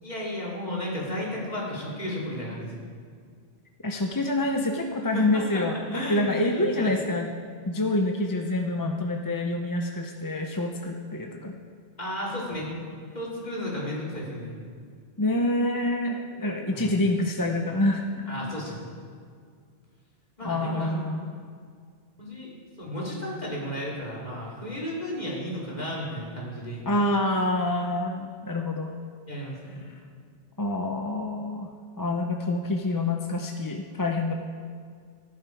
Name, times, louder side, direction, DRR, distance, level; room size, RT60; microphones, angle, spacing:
voice 1, 0.0-2.8 5.1-5.6 5.9-6.9 12.0-12.7 13.1-14.6 16.7-17.0 18.3-18.9 20.4-21.0 22.2-22.5 22.8-26.8 29.3-29.8, left 1 dB, 40° left, -5 dB, 3.3 m, -33 dB
voice 2, 3.8-7.3 7.7-11.6 15.2-18.3 20.4-21.2 26.9-28.9 30.6-31.7 32.0-34.3, left 1 dB, 20° left, 2 dB, 0.7 m, -27 dB
16.5 x 11.0 x 4.7 m, 2.1 s
omnidirectional pair, 1.1 m